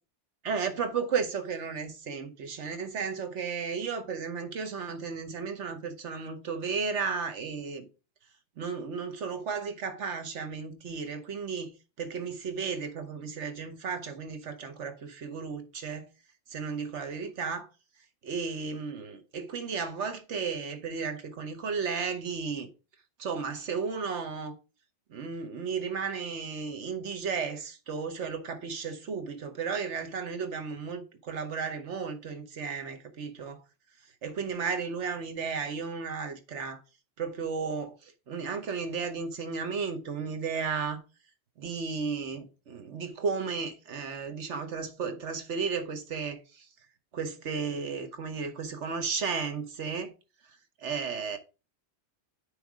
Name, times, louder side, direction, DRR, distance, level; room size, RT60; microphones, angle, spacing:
voice 1, 0.4-7.9 8.6-11.7 12.0-16.1 16.5-17.7 18.2-22.7 23.2-24.5 25.1-33.6 34.0-36.8 37.2-41.0 41.6-46.7 47.1-50.1 50.8-51.4, right 5 dB, 75° right, 1.2 m, -34 dB
9.8 x 3.3 x 4.8 m
omnidirectional pair, 1.2 m